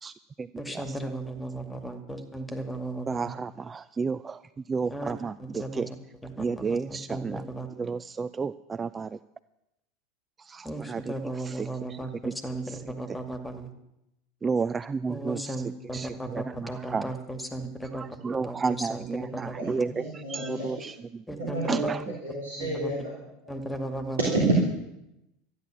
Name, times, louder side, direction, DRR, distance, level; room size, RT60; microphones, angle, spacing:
voice 1, 0.0-1.0 3.1-4.4 4.7-5.9 6.4-7.4 7.7-9.2 10.4-12.0 12.2-12.3 12.7-12.8 14.4-15.6 15.9-17.1 17.9-22.1, right 5 dB, 20° right, 15 dB, 0.4 m, -32 dB
voice 2, 0.6-3.3 4.9-5.1 5.4-5.8 6.2-7.7 10.6-13.7 15.1-18.1 18.4-19.1 19.3-19.8 21.3-21.8 22.6-22.9 23.5-24.3, right 1 dB, 10° left, 7 dB, 2.3 m, -36 dB
voice 3, 19.5-20.9 21.4-21.9 22.2-23.3 24.2-24.5, right 2 dB, 75° right, -3 dB, 3.2 m, -29 dB
13.0 x 10.5 x 7.6 m, 0.87 s
figure-of-eight pair, 80°, 0 cm